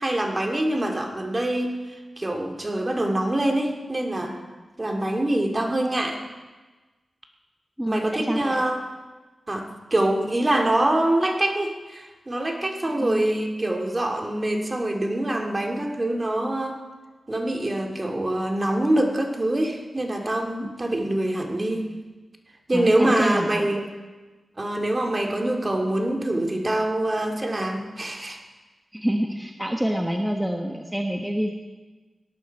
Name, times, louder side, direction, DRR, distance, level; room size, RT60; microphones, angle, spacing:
voice 1, 0.0-4.4 4.8-6.2 7.9-8.8 9.5-16.8 17.3-21.9 22.7-23.9 24.6-28.4, right 1 dB, 30° right, 2 dB, 2.2 m, -25 dB
voice 2, 7.8-8.6 12.9-13.3 20.6-20.7 22.7-23.9 28.9-31.5, equal, 5° right, 2 dB, 1.2 m, -27 dB
17.5 x 11.0 x 4.6 m, 1.3 s
cardioid pair, 55°, 0 cm